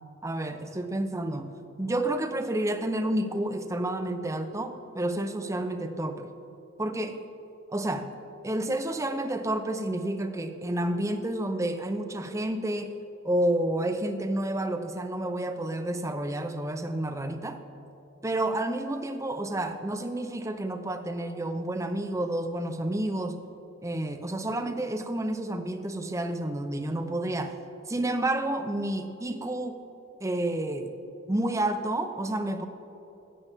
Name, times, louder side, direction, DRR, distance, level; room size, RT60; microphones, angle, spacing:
voice 1, 0.2-1.5 1.8-6.3 6.8-7.2 7.7-8.1 8.4-12.9 13.2-17.6 18.2-23.4 23.8-27.6 27.9-29.9 30.2-30.9 31.3-32.7, right 1 dB, 15° right, 8 dB, 0.6 m, -30 dB
16.5 x 14.0 x 3.6 m, 2.9 s
head